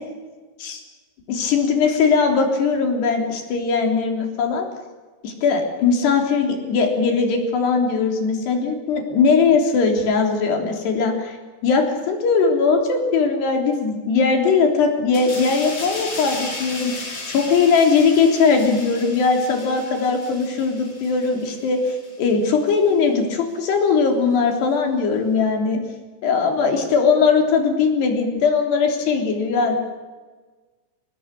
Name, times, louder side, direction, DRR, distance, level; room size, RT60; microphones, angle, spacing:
voice 1, 1.3-4.7 5.2-11.4 11.6-25.8 26.2-29.8, left 5 dB, 75° left, 2 dB, 5.5 m, -20 dB
sound 1, 15.1-22.3 22.7-22.9, left 2 dB, 40° left, 6.0 m, -35 dB
25.5 x 19.5 x 8.3 m, 1.3 s
omnidirectional pair, 4.9 m